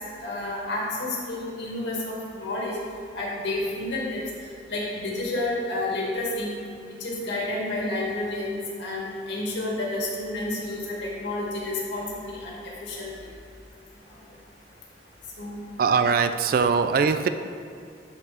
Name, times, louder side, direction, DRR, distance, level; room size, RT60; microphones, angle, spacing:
voice 1, 0.2-2.8 3.1-4.2 4.7-6.5 7.0-13.1 15.4-15.6, left 2 dB, 90° left, -4 dB, 1.8 m, -30 dB
voice 2, 15.8-17.3, right 5 dB, 55° right, 10 dB, 0.3 m, -21 dB
10.5 x 4.2 x 3.4 m, 2.3 s
head